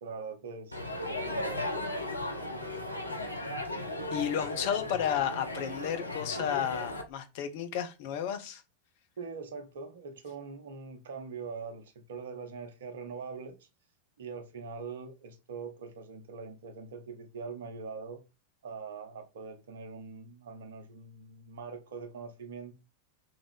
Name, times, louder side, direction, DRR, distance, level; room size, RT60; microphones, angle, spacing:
voice 1, 0.0-1.9 9.2-13.7 14.2-18.2 18.6-22.7, right 5 dB, 60° right, 0.8 m, -43 dB
Crowd, 0.7-7.0, left 1 dB, 85° left, 0.7 m, -36 dB
voice 2, 4.1-8.6, left 9 dB, 50° left, 0.8 m, -32 dB
3.9 x 3.5 x 3.5 m
figure-of-eight pair, 90°, 0 cm